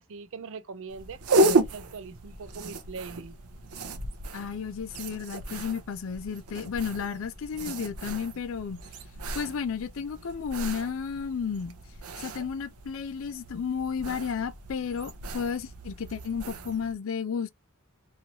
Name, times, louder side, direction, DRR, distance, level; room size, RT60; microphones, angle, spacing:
voice 1, 0.0-3.4, right 4 dB, 60° right, 0.4 m, -40 dB
sound 1, 0.9-16.9, right 2 dB, 90° right, 0.7 m, -33 dB
voice 2, 4.3-8.8 9.3-11.8 12.2-17.5, left 6 dB, 65° left, 0.4 m, -33 dB
2.9 x 2.7 x 2.7 m
head